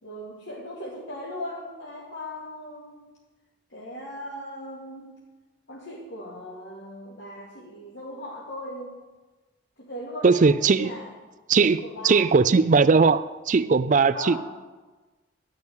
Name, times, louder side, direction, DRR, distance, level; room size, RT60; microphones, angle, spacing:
voice 1, 0.0-3.1 3.7-5.2 5.7-9.0 9.8-11.1 11.6-12.3 14.1-14.4, left 1 dB, 75° left, 2.4 m, -38 dB
voice 2, 10.2-10.9 11.5-11.8 12.0-14.4, right 4 dB, 45° right, 0.4 m, -19 dB
12.0 x 6.4 x 8.7 m
head